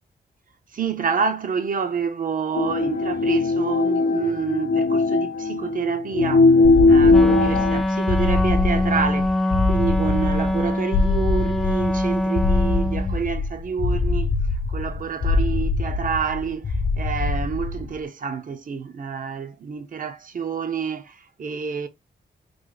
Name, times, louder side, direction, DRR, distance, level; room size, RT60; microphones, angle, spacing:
voice 1, 0.7-6.6 6.9-9.4 9.6-14.3 14.7-21.9, right 6 dB, 50° right, 0.7 m, -28 dB
sound 1, 2.5-7.8, left 3 dB, 80° left, 0.6 m, -18 dB
sound 2, 6.6-18.0, left 3 dB, 55° left, 0.9 m, -24 dB
Wind instrument woodwind instrument, 7.1-13.2, left 1 dB, ahead, 0.5 m, -24 dB
3.3 x 2.5 x 3.7 m
wide cardioid pair, 100°, 17 cm